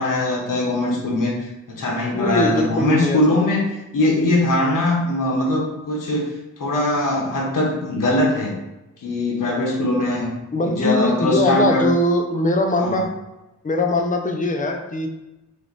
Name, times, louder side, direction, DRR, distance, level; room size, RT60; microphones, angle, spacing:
voice 1, 0.0-6.3 6.6-8.6 9.0-10.3 10.6-11.9 12.8-13.0, left 1 dB, 80° left, -4 dB, 1.1 m, -21 dB
voice 2, 2.1-3.2 10.5-13.1 13.6-15.1, left 1 dB, 25° left, 4 dB, 0.6 m, -21 dB
3.2 x 2.9 x 4.0 m, 1.0 s
cardioid pair, 70°, 32 cm